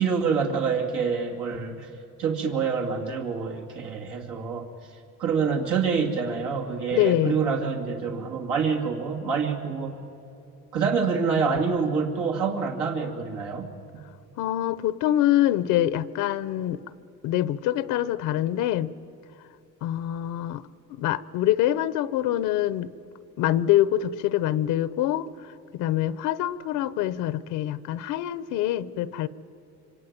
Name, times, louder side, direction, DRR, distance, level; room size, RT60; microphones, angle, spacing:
voice 1, 0.0-1.9 2.2-4.7 5.2-10.0 10.7-13.7, right 5 dB, 80° right, 0 dB, 2.7 m, -26 dB
voice 2, 6.9-7.4 14.4-16.8 17.2-18.9 19.8-20.6 20.9-22.9 23.4-25.3 25.7-29.3, left 13 dB, 85° left, 16 dB, 0.9 m, -25 dB
25.5 x 25.0 x 9.3 m, 2.8 s
cardioid pair, 115°, 31 cm